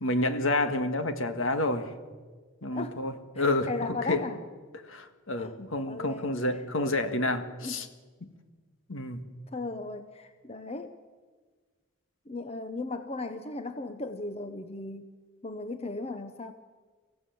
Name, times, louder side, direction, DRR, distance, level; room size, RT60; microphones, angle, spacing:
voice 1, 0.0-1.9 2.6-3.7 4.1-4.2 4.7-7.9 8.9-9.2, left 2 dB, 70° left, 8 dB, 1.7 m, -29 dB
voice 2, 3.4-4.4 5.4-5.5 5.9-6.4 7.6-7.8 9.5-10.9 12.3-15.1 15.4-16.5, left 2 dB, 30° left, 9 dB, 0.7 m, -36 dB
25.0 x 15.5 x 7.8 m, 1.5 s
head